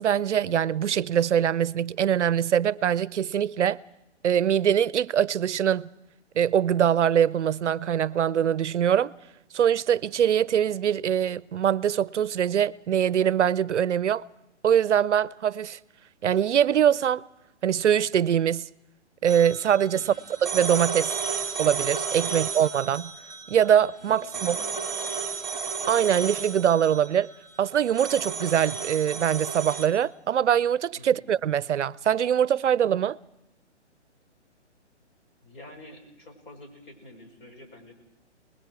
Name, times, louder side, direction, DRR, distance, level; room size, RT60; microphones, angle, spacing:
voice 1, 0.0-3.8 4.2-5.9 6.4-9.1 9.5-14.2 14.6-15.8 16.2-17.2 17.6-18.7 19.2-20.1 20.4-21.1 21.6-23.1 23.5-24.6 25.9-27.3 27.6-33.2, right 9 dB, 75° right, 0.7 m, -23 dB
sound 1, 19.3-29.9, right 5 dB, ahead, 2.2 m, -33 dB
voice 2, 19.9-20.2 22.3-22.4 24.0-25.3 31.0-31.2 35.4-37.9, left 1 dB, 45° left, 5.7 m, -48 dB
28.0 x 20.5 x 4.8 m
hypercardioid pair, 150°, 35 cm